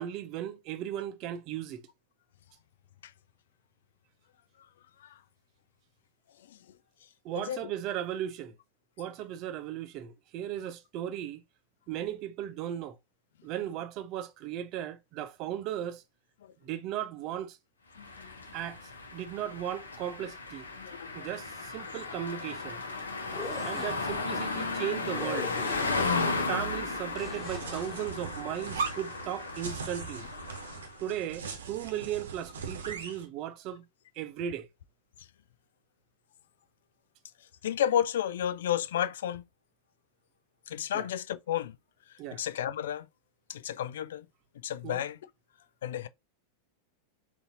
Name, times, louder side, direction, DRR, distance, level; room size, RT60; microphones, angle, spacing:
voice 1, 0.0-1.8 7.2-8.6 9.0-11.4 11.9-13.0 13.4-16.0 16.6-17.6 18.5-18.8 19.1-20.7 21.1-22.8 23.6-25.5 26.4-30.3 31.0-33.9 34.2-34.7 40.9-41.1 42.2-42.4 44.8-45.0, right 11 dB, 40° right, 0.6 m, -36 dB
voice 2, 7.4-7.7 16.4-16.5 18.0-18.4 20.8-21.3 35.2-35.3 37.6-39.4 40.7-41.8 42.3-43.1 43.5-44.3 44.6-45.2 45.8-46.1, left 10 dB, 60° left, 0.4 m, -32 dB
sound 1, 18.0-31.0, left 3 dB, 75° left, 0.9 m, -35 dB
sound 2, 23.2-24.2 25.2-26.2 27.1-28.1, left 2 dB, 10° left, 1.3 m, -41 dB
sound 3, 27.4-33.2, right 5 dB, 65° right, 0.8 m, -39 dB
4.0 x 2.7 x 3.6 m
figure-of-eight pair, 90°, 0 cm